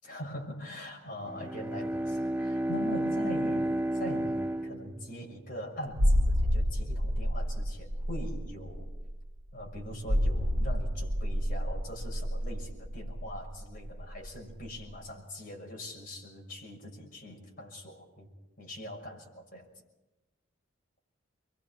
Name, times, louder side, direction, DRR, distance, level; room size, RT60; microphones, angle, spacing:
voice 1, 0.0-8.9 9.5-18.3 18.6-19.7, equal, 40° left, 0 dB, 6.4 m, -42 dB
Bowed string instrument, 1.2-5.6, right 1 dB, 10° right, 1.0 m, -32 dB
sound 1, 6.0-14.4 14.6-14.8, equal, 65° right, 1.6 m, -29 dB
29.5 x 23.0 x 4.5 m, 1.1 s
head